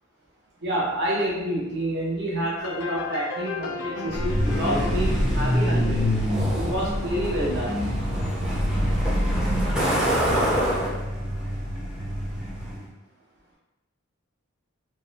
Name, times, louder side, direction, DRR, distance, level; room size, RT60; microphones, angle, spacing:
voice 1, 0.6-6.0 6.5-7.8, right 1 dB, 50° right, -6 dB, 0.8 m, -28 dB
sound 1, 2.6-7.2, left 4 dB, 65° left, 0.3 m, -36 dB
Truck, 4.1-12.8, equal, 5° right, 0.4 m, -24 dB
2.6 x 2.1 x 2.6 m, 1.0 s
head